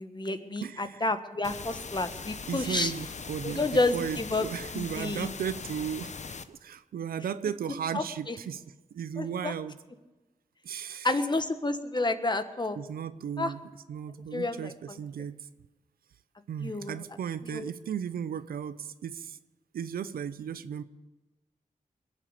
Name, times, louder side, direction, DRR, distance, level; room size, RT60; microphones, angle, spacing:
voice 1, 0.0-2.9 3.4-4.5 4.7-5.3 7.9-8.4 9.2-9.5 11.0-12.8 13.4-13.5 14.3-15.0 16.6-17.0 17.4-17.7, left 2 dB, 30° left, 9 dB, 1.5 m, -30 dB
voice 2, 0.6-1.0 2.5-3.7 3.9-6.1 6.5-8.6 8.9-9.8 10.6-11.1 12.8-13.6 13.9-15.5 16.5-19.4 19.7-20.8, right 8 dB, 90° right, 14 dB, 0.6 m, -35 dB
sound 1, 1.4-6.4, left 5 dB, 50° left, 0.9 m, -40 dB
21.5 x 7.3 x 8.1 m, 1.2 s
cardioid pair, 45°, 15 cm